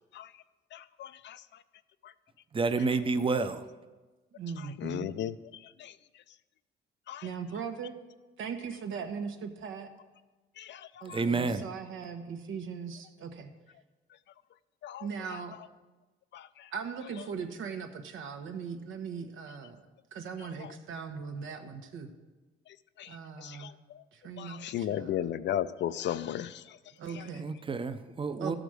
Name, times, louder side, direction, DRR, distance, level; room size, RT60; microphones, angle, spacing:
voice 1, 0.1-0.4 0.7-1.6 2.0-2.1 4.6-6.2 7.1-7.3 10.6-11.2 14.8-15.6 16.3-16.7 17.2-17.3 20.4-20.7 22.7-24.0 24.4-26.8 27.1-27.3, left 11 dB, 65° left, 14 dB, 0.5 m, -37 dB
voice 2, 2.5-3.7 11.1-11.6 27.3-28.6, right 4 dB, 25° right, 10 dB, 0.7 m, -29 dB
voice 3, 4.3-5.1 7.2-7.9 8.4-9.9 11.0-13.5 15.0-15.6 16.7-19.8 20.1-22.1 23.1-23.7 24.1-25.1 27.0-27.5 28.4-28.6, right 6 dB, 80° right, 6 dB, 1.1 m, -39 dB
12.0 x 5.1 x 6.3 m, 1.2 s
cardioid pair, 90°, 20 cm